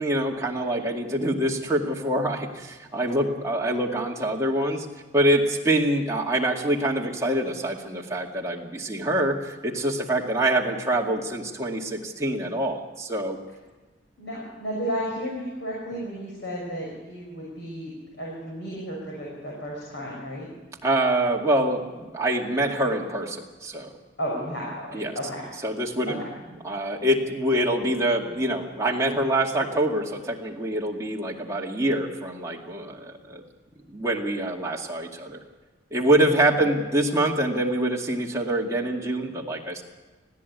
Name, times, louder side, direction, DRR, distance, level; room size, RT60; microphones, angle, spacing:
voice 1, 0.0-4.9 5.1-9.4 9.6-13.4 20.8-23.9 24.9-25.1 25.6-26.2 26.6-33.4 33.9-35.4 35.9-39.8, right 1 dB, 15° right, -2 dB, 2.2 m, -25 dB
voice 2, 14.2-17.9 18.2-20.5 24.2-25.5 26.1-26.2 36.5-36.6, equal, 65° left, -4 dB, 6.0 m, -33 dB
21.0 x 15.0 x 8.3 m, 1.3 s
head